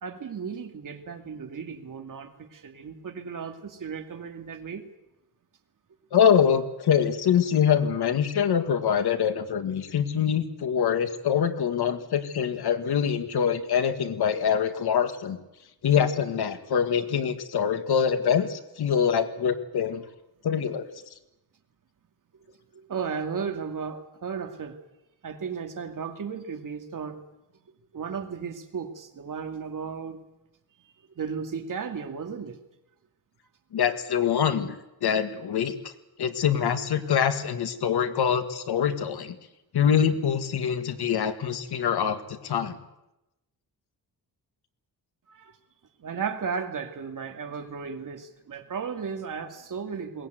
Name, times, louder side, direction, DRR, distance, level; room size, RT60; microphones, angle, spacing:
voice 1, 0.0-4.9 22.7-24.7 25.2-27.2 27.9-30.2 30.8-32.6 45.3-45.6 46.0-50.3, right 6 dB, 55° right, 5 dB, 2.5 m, -35 dB
voice 2, 6.1-15.4 15.8-20.0 20.4-20.9 33.7-34.8 35.0-35.7 36.2-39.4 39.7-42.8, left 8 dB, 85° left, 9 dB, 1.8 m, -24 dB
21.5 x 18.5 x 9.3 m, 0.93 s
wide cardioid pair, 155°, 38 cm